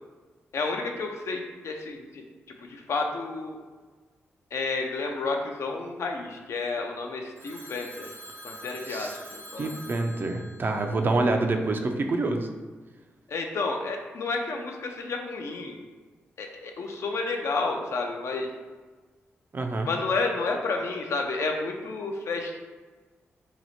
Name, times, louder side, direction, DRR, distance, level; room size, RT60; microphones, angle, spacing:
voice 1, 0.5-2.2 2.6-3.6 4.5-8.1 8.4-9.7 13.3-15.8 16.4-18.5 19.8-22.6, left 3 dB, 70° left, 3 dB, 0.4 m, -31 dB
Telephone, 7.4-11.6, right 1 dB, 75° right, 1.1 m, -45 dB
voice 2, 8.9-9.2 9.6-12.5 19.5-19.9, right 2 dB, 45° right, 4 dB, 0.4 m, -27 dB
2.9 x 2.0 x 4.1 m, 1.4 s
cardioid pair, 55°, 5 cm